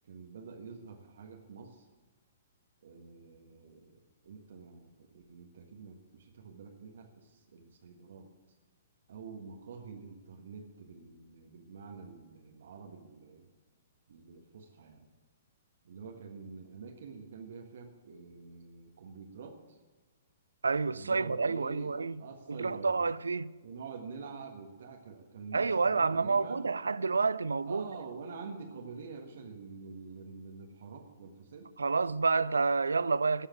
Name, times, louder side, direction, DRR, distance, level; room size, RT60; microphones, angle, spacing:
voice 1, 0.0-1.8 2.8-4.0 4.2-8.3 9.1-13.4 14.1-15.1 15.8-19.8 20.9-21.9 22.2-23.1 23.6-26.6 27.6-31.7, right 5 dB, 60° right, 1.5 m, -47 dB
voice 2, 20.6-22.2 22.5-23.5 25.5-27.9 31.8-33.5, right 4 dB, 75° right, 0.4 m, -29 dB
14.0 x 5.6 x 9.7 m
figure-of-eight pair, 115°, 0 cm